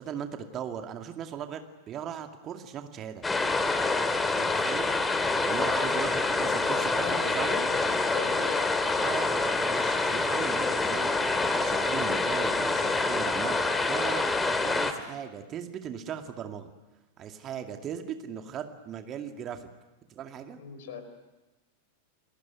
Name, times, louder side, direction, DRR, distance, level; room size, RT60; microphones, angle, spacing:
voice 1, 0.0-3.2 4.3-5.0 5.4-7.7 9.0-14.3 14.6-16.7 17.2-19.7 20.1-20.6, right 8 dB, 30° right, 6 dB, 2.2 m, -38 dB
sound 1, 3.2-14.9, left 3 dB, 10° left, 2.2 m, -26 dB
voice 2, 6.3-7.6 7.9-8.7 20.6-21.0, left 5 dB, 55° left, 9 dB, 4.7 m, -40 dB
29.5 x 19.5 x 9.3 m, 1.1 s
figure-of-eight pair, 90°, 0 cm